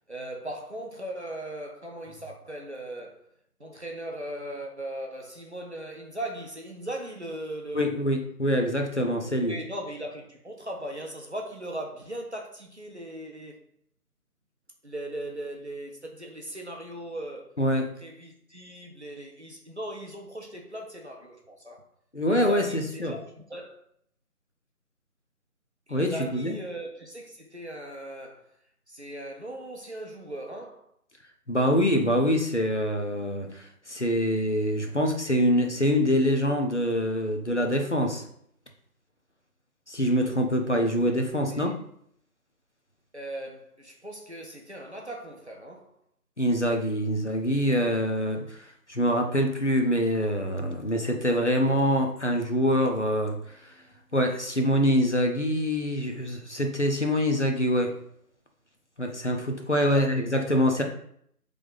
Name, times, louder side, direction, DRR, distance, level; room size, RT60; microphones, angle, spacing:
voice 1, 0.1-3.3 3.6-7.9 9.5-13.6 14.8-17.5 18.0-21.8 22.3-23.8 25.9-28.5 28.9-30.9 41.5-41.7 43.1-45.9 59.9-60.4, right 1 dB, 45° right, 0 dB, 0.6 m, -38 dB
voice 2, 7.7-9.6 17.6-17.9 22.1-23.2 25.9-26.6 31.5-38.2 39.9-41.7 46.4-48.6 48.9-53.6 54.1-57.9 59.0-60.8, equal, 50° left, 4 dB, 0.6 m, -25 dB
3.2 x 2.5 x 3.9 m, 0.67 s
figure-of-eight pair, 170°, 47 cm